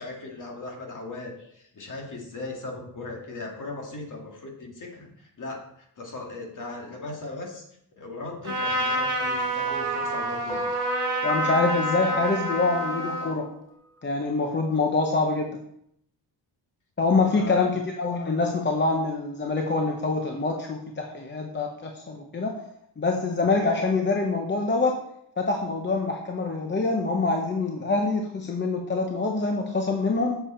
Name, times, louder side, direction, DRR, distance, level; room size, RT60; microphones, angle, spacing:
voice 1, 0.0-7.6 8.0-10.7 17.3-17.7, left 2 dB, 45° left, 0 dB, 2.1 m, -38 dB
Trumpet, 8.4-13.4, right 1 dB, 30° right, 2.4 m, -28 dB
sound 1, 9.7-14.0, equal, 5° left, 0.3 m, -37 dB
voice 2, 11.2-13.5 14.0-15.6 17.0-22.6 23.0-25.0 25.4-30.4, left 3 dB, 25° left, 2 dB, 0.7 m, -25 dB
8.0 x 6.9 x 4.4 m, 0.73 s
wide cardioid pair, 175°, 41 cm